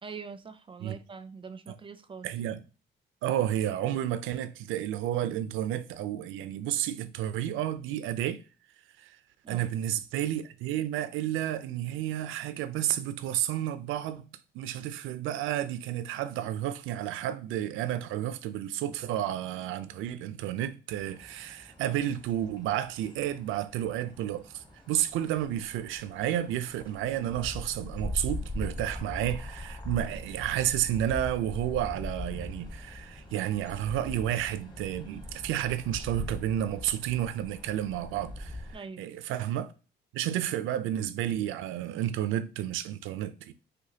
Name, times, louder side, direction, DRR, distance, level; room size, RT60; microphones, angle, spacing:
voice 1, 0.0-2.3 9.4-9.7 38.7-39.1, right 5 dB, 25° right, 0.4 m, -43 dB
voice 2, 2.2-2.6 3.2-8.4 9.0-9.2 9.5-14.3 14.5-38.7 39.0-39.7 40.1-43.5, right 12 dB, 90° right, 0.4 m, -31 dB
sound 1, 20.9-38.8, left 1 dB, 20° left, 0.9 m, -41 dB
5.0 x 2.2 x 2.7 m
cardioid pair, 90°, 20 cm